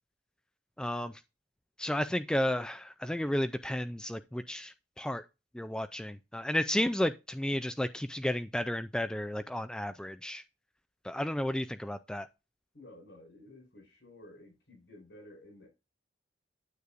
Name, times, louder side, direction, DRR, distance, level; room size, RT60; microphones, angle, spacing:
voice 1, 0.8-1.1 1.8-5.2 5.5-10.4 11.0-12.3, left 1 dB, 5° left, 0.3 m, -32 dB
voice 2, 12.7-15.7, left 1 dB, 80° left, 4.7 m, -53 dB
9.5 x 8.2 x 2.5 m
head